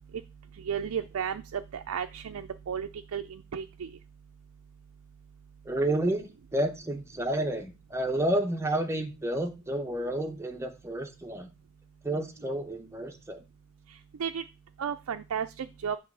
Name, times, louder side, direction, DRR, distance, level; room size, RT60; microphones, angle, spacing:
voice 1, 0.6-3.9 14.2-14.4 14.8-16.0, right 7 dB, 90° right, 7 dB, 0.4 m, -33 dB
voice 2, 5.6-11.5 12.0-13.4, right 1 dB, 15° right, 5 dB, 0.9 m, -30 dB
7.8 x 3.1 x 6.1 m, 0.28 s
head